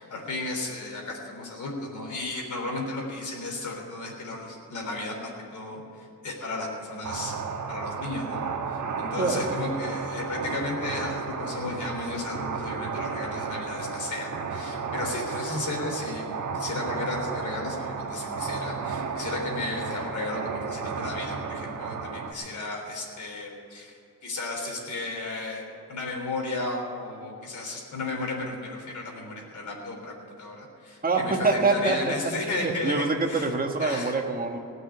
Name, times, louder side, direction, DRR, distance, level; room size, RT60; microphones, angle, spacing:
voice 1, 0.0-7.4 7.7-8.4 8.7-25.6 25.9-33.5 33.8-34.1, left 2 dB, 60° left, 0 dB, 3.7 m, -34 dB
sound 1, 7.0-22.3, right 5 dB, 65° right, 1.4 m, -33 dB
voice 2, 9.2-9.6 31.0-32.1 32.6-34.6, right 3 dB, 25° right, 3 dB, 1.4 m, -25 dB
17.5 x 6.3 x 9.7 m, 2.6 s
wide cardioid pair, 135°, 33 cm